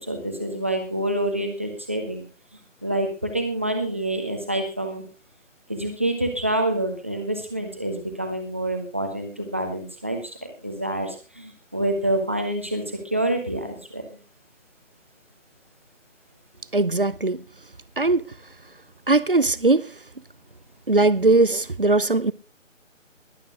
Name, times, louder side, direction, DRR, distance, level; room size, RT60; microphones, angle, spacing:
voice 1, 0.0-2.3 2.8-5.0 5.7-14.0, right 1 dB, 10° right, 1.0 m, -27 dB
voice 2, 16.7-17.4 18.0-18.3 19.1-19.9 20.9-22.3, right 2 dB, 45° right, 0.7 m, -20 dB
21.0 x 8.7 x 3.7 m
figure-of-eight pair, 160°, 38 cm